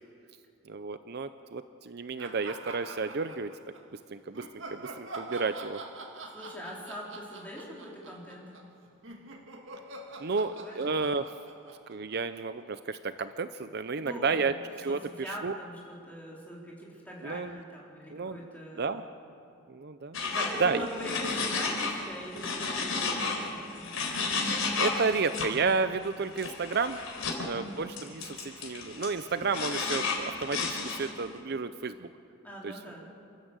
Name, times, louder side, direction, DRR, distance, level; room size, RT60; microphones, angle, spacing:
voice 1, 0.7-3.5 4.1-5.8 10.2-11.3 11.9-15.6 17.2-17.6 18.1-18.4 18.8-19.0 19.7-20.2 20.6-20.9 24.8-27.0 27.4-32.1 32.6-32.8, right 4 dB, 50° right, 11 dB, 0.6 m, -32 dB
sound 1, 2.2-3.8 4.3-12.6, right 2 dB, 65° right, 1.9 m, -45 dB
voice 2, 6.3-8.4 10.5-10.8 13.9-14.5 14.9-15.0 15.2-19.0 20.2-23.9 27.2-27.5 32.4-33.1, equal, 10° left, -4 dB, 4.1 m, -42 dB
sound 2, 20.1-22.0 22.3-25.5 26.3-27.5 28.0-31.2, left 4 dB, 85° left, 4.2 m, -32 dB
29.0 x 13.0 x 8.2 m, 2.8 s
head